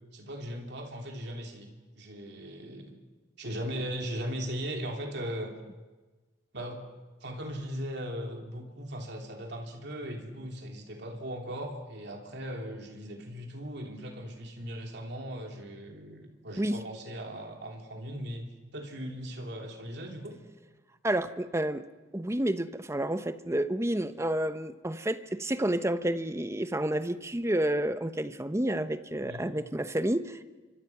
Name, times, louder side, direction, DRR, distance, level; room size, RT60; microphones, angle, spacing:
voice 1, 0.1-2.9 3.4-5.5 6.5-6.8 7.2-18.5 18.7-20.4 29.2-29.5, equal, 60° right, 2 dB, 3.2 m, -38 dB
voice 2, 21.0-21.9 22.1-30.4, right 1 dB, 15° right, 11 dB, 0.8 m, -30 dB
27.5 x 24.5 x 6.0 m, 1.3 s
head